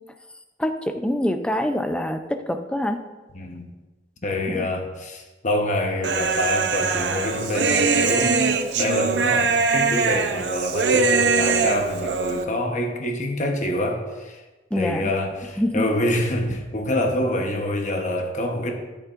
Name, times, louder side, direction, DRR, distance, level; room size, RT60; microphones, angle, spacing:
voice 1, 0.6-3.0 4.5-4.7 14.7-15.1 15.6-15.9, left 1 dB, 5° left, 7 dB, 0.5 m, -25 dB
voice 2, 3.3-3.7 4.2-8.5 8.7-14.4 14.7-18.7, left 1 dB, 45° left, 3 dB, 1.0 m, -26 dB
Human voice, 6.0-12.4, right 4 dB, 80° right, 0.6 m, -22 dB
12.5 x 7.2 x 2.5 m, 1.2 s
head